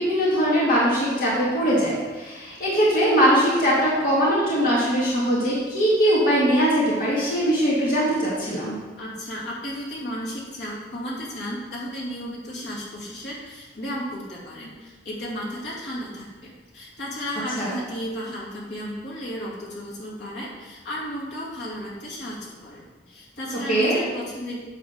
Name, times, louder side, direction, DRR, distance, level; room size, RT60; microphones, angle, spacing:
voice 1, 0.0-8.8 17.6-17.7 23.7-24.0, equal, 50° left, -7 dB, 2.1 m, -21 dB
voice 2, 9.0-24.6, equal, 75° left, -6 dB, 2.5 m, -34 dB
9.0 x 4.0 x 6.5 m, 1.3 s
head